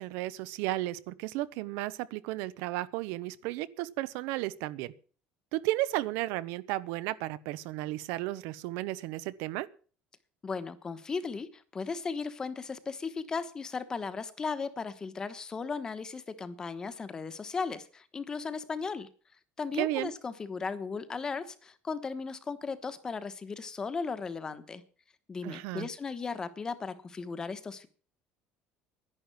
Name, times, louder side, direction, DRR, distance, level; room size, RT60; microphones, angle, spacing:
voice 1, 0.0-4.9 5.5-9.7 19.8-20.1 25.4-25.9, right 17 dB, 85° right, 0.9 m, -33 dB
voice 2, 10.4-19.1 19.6-24.8 25.3-27.9, left 5 dB, 20° left, 1.1 m, -36 dB
11.0 x 10.5 x 8.9 m
cardioid pair, 175°, 4 cm